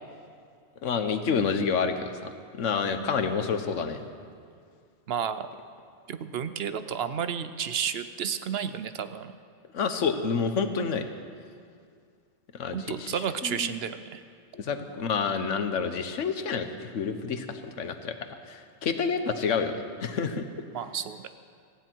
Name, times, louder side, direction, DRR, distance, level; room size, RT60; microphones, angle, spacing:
voice 1, 0.8-2.1 2.6-4.0 9.7-11.0 12.6-13.1 13.4-13.7 14.5-18.1 18.5-20.4, left 5 dB, 90° left, 8 dB, 1.3 m, -28 dB
voice 2, 5.1-5.5 6.1-9.3 12.7-14.2 20.7-21.3, right 8 dB, 60° right, 11 dB, 0.8 m, -31 dB
17.5 x 15.0 x 4.6 m, 2.2 s
omnidirectional pair, 1.2 m